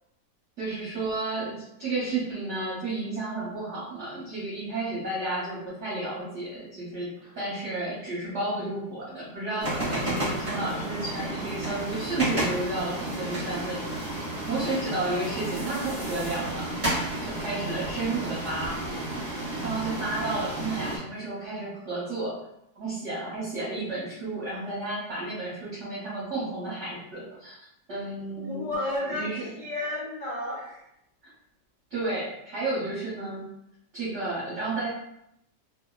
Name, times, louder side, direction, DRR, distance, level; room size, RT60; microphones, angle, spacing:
voice 1, 0.6-13.9 14.5-16.7 17.2-18.8 19.6-22.4 22.7-27.5 27.9-28.7 29.1-29.4 31.9-33.4 33.9-34.9, right 2 dB, 50° right, -10 dB, 1.1 m, -32 dB
sound 1, 9.6-21.0, right 1 dB, 30° right, 0.7 m, -32 dB
voice 2, 28.4-30.8, left 1 dB, 60° left, -8 dB, 0.5 m, -32 dB
3.0 x 2.0 x 2.3 m, 0.78 s
omnidirectional pair, 1.8 m